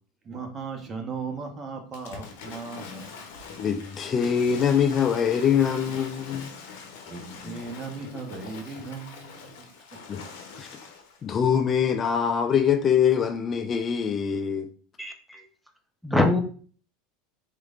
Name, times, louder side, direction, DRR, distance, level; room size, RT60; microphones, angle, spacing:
voice 1, 0.2-3.2 7.1-9.7, right 4 dB, 30° right, 0.9 m, -37 dB
Waves surf / Splash splatter, 1.9-11.2, left 5 dB, 70° left, 0.7 m, -43 dB
voice 2, 3.6-6.5 7.4-7.6 10.1-10.2 10.6-10.7 11.2-14.7, left 7 dB, 35° left, 0.4 m, -24 dB
voice 3, 15.0-15.4 16.0-16.4, left 2 dB, ahead, 0.7 m, -23 dB
3.7 x 3.2 x 2.5 m
hypercardioid pair, 85°, 0 cm